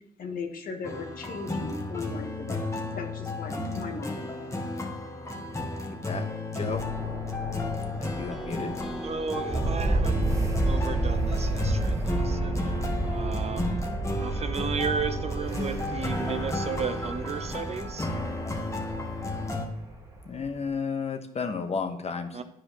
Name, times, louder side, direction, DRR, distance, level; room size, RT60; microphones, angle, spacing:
voice 1, 0.2-2.7 2.9-4.3, left 4 dB, 65° left, 1.3 m, -37 dB
sound 1, 0.8-19.7, left 2 dB, 20° left, 1.3 m, -33 dB
voice 2, 5.7-6.2 6.5-6.8 8.0-8.7 20.3-22.4, left 5 dB, 40° left, 1.1 m, -33 dB
sound 2, 6.7-20.6, right 2 dB, 20° right, 1.5 m, -31 dB
sound 3, 8.3-12.4, right 1 dB, ahead, 0.9 m, -45 dB
voice 3, 9.0-10.4 10.6-12.8 13.0-13.8 14.2-18.1 22.3-22.4, right 5 dB, 40° right, 0.6 m, -34 dB
10.0 x 4.8 x 3.0 m
supercardioid pair, 65°, 16 cm